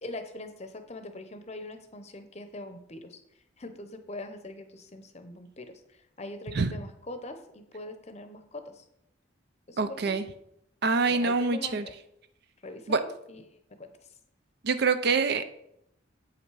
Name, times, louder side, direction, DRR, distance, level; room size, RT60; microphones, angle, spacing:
voice 1, 0.0-3.2 3.6-8.8 9.7-10.1 11.1-11.9 12.6-13.9, left 2 dB, 35° left, 8 dB, 0.7 m, -42 dB
voice 2, 9.8-10.3 10.8-11.9 12.9-13.0 14.6-15.5, right 4 dB, 55° right, 11 dB, 0.5 m, -25 dB
8.0 x 5.6 x 4.7 m, 0.76 s
head